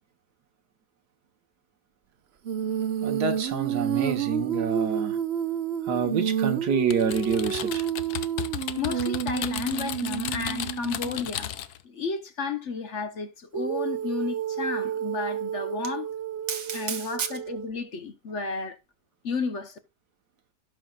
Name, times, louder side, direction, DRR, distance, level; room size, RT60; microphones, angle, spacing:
Female singing, 2.4-11.3 13.5-17.7, right 9 dB, 55° right, 0.8 m, -30 dB
voice 1, 3.0-5.2 5.8-7.9 16.5-17.3, right 6 dB, 90° right, 1.8 m, -28 dB
Typing, 6.9-11.8, left 11 dB, 75° left, 1.3 m, -34 dB
voice 2, 8.8-11.5 11.8-16.1 16.7-18.8 19.2-19.8, left 4 dB, 50° left, 1.2 m, -32 dB
17.0 x 5.8 x 2.4 m
omnidirectional pair, 1.7 m